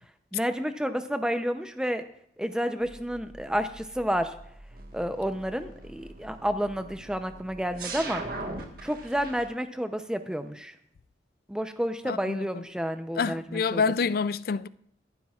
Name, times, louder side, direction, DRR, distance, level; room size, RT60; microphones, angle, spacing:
voice 1, 0.3-2.0 2.4-4.3 4.9-8.2 8.8-10.8 11.5-13.8, equal, 5° right, 0.6 m, -30 dB
sound 1, 2.8-9.5, right 3 dB, 50° right, 1.6 m, -41 dB
voice 2, 12.1-12.5 13.2-14.7, left 5 dB, 50° left, 0.3 m, -27 dB
23.0 x 11.5 x 2.4 m
head